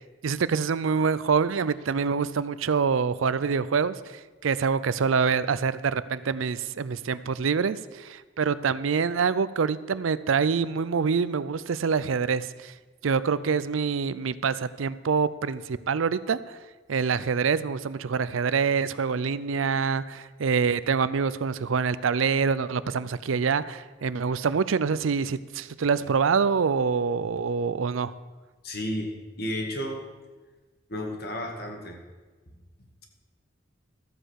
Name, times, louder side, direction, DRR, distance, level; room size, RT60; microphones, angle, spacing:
voice 1, 0.2-12.7 13.0-16.6 16.9-28.1, right 5 dB, 85° right, 16 dB, 0.5 m, -26 dB
voice 2, 28.6-30.0 30.9-32.0, equal, 50° left, 3 dB, 1.9 m, -32 dB
13.5 x 7.8 x 6.4 m, 1.3 s
head